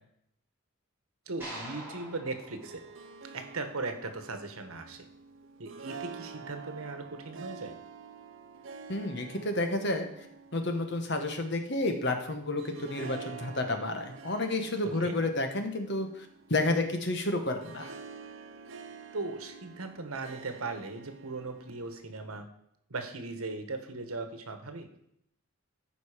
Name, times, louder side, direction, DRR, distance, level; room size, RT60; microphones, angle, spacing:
voice 1, 1.3-2.8 3.3-5.1 5.6-7.7 15.0-15.2 19.1-22.5 22.9-24.9, right 3 dB, 85° right, 7 dB, 1.3 m, -38 dB
sound 1, 1.4-3.8, right 1 dB, 10° right, 4.5 m, -45 dB
Harp, 2.4-22.2, right 5 dB, 65° right, 0.7 m, -48 dB
voice 2, 8.9-10.1 10.5-17.9, left 2 dB, 55° left, 5 dB, 1.3 m, -31 dB
14.0 x 5.3 x 5.0 m, 0.74 s
head